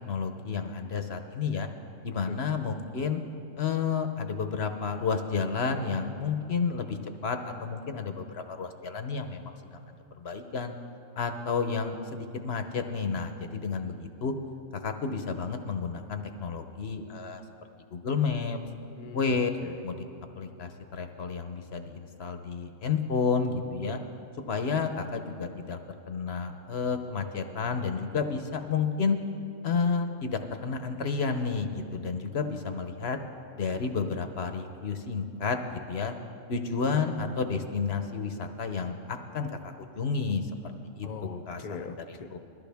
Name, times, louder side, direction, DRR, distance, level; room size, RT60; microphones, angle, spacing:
voice 1, 0.0-1.7 2.0-3.2 3.6-9.8 10.2-10.7 11.2-14.3 14.7-17.4 17.9-18.6 19.1-19.5 19.8-20.0 20.4-24.0 24.5-25.8 26.1-29.2 29.6-33.2 33.6-36.1 36.5-41.1 41.5-41.6 42.3-42.4, left 5 dB, 60° left, 7 dB, 1.0 m, -31 dB
voice 2, 19.0-19.8 41.0-42.3, left 5 dB, 40° left, 6 dB, 0.7 m, -41 dB
21.0 x 14.0 x 3.5 m, 2.9 s
omnidirectional pair, 1.3 m